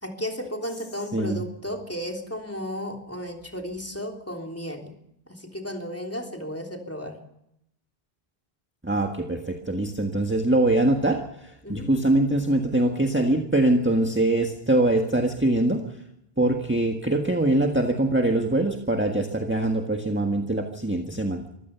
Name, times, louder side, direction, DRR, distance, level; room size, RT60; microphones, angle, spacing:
voice 1, 0.0-4.9 5.3-7.2 11.6-11.9, equal, 15° left, 2 dB, 3.4 m, -34 dB
voice 2, 1.1-1.4 8.8-16.0 16.4-21.4, right 1 dB, 10° right, 3 dB, 1.6 m, -23 dB
24.5 x 15.5 x 7.0 m, 0.78 s
omnidirectional pair, 1.0 m